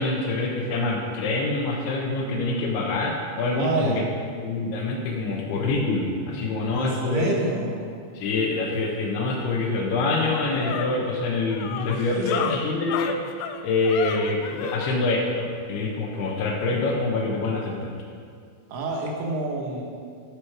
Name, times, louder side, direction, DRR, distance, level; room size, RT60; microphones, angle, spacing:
voice 1, 0.0-4.0 4.4-7.3 8.2-13.2 13.6-17.9, left 3 dB, 70° left, 0 dB, 2.7 m, -25 dB
voice 2, 3.6-4.0 6.7-7.8 11.7-12.6 18.7-19.8, right 2 dB, 75° right, -1 dB, 3.6 m, -28 dB
sound 1, 9.5-9.6 10.0-15.0, left 9 dB, 90° left, 3.0 m, -32 dB
12.5 x 6.1 x 4.8 m, 2.2 s
omnidirectional pair, 5.5 m